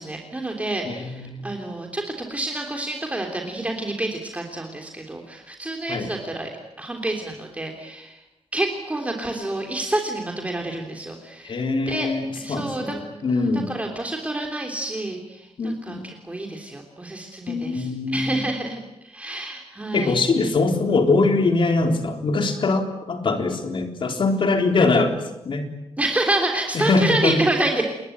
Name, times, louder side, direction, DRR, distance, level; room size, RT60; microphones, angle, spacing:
voice 1, 0.0-6.5 6.8-8.2 8.5-12.1 12.3-12.9 13.3-20.2 26.0-27.8, right 2 dB, 15° right, 2 dB, 3.3 m, -28 dB
voice 2, 0.9-1.5 5.9-6.1 11.4-13.7 15.6-16.0 17.5-18.4 19.9-25.2 25.5-25.7 26.7-27.4, left 3 dB, 55° left, 5 dB, 3.8 m, -22 dB
29.5 x 21.5 x 9.3 m, 0.90 s
wide cardioid pair, 175°, 11 cm